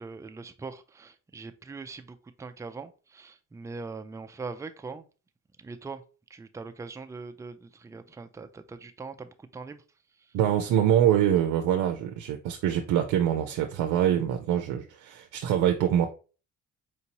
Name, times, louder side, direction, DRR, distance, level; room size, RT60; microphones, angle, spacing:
voice 1, 0.0-5.1 5.6-6.0 6.3-9.8 10.2-10.3, right 4 dB, 10° right, 0.3 m, -41 dB
voice 2, 10.3-16.1, right 10 dB, 90° right, 0.5 m, -24 dB
4.5 x 2.7 x 2.8 m
cardioid pair, 90°, 30 cm